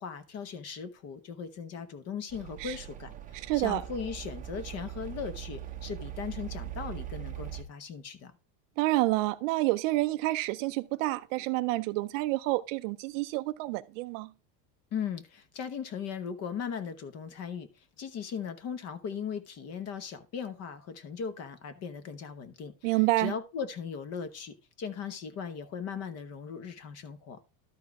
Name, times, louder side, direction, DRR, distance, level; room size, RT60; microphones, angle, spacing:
voice 1, 0.0-8.3 14.9-17.7 18.0-27.4, left 6 dB, 30° left, 0.9 m, -38 dB
sound 1, 2.3-7.6, right 11 dB, 15° right, 0.8 m, -41 dB
voice 2, 3.3-3.8 8.8-14.3 22.8-23.3, right 19 dB, 50° right, 0.5 m, -28 dB
12.5 x 4.5 x 4.6 m
supercardioid pair, 150°, 49 cm